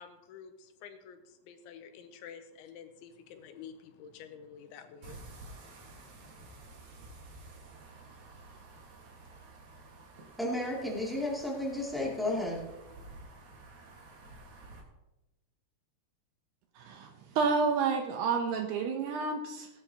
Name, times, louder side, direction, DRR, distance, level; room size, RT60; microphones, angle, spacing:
voice 1, 0.0-6.3, left 7 dB, 80° left, 8 dB, 3.1 m, -50 dB
sound 1, 5.0-14.8, right 2 dB, 50° right, 2.5 m, -51 dB
voice 2, 10.4-12.7, left 1 dB, ahead, -4 dB, 0.9 m, -33 dB
voice 3, 16.8-19.7, right 5 dB, 75° right, 4 dB, 2.6 m, -30 dB
18.0 x 11.5 x 3.0 m, 0.97 s
omnidirectional pair, 5.4 m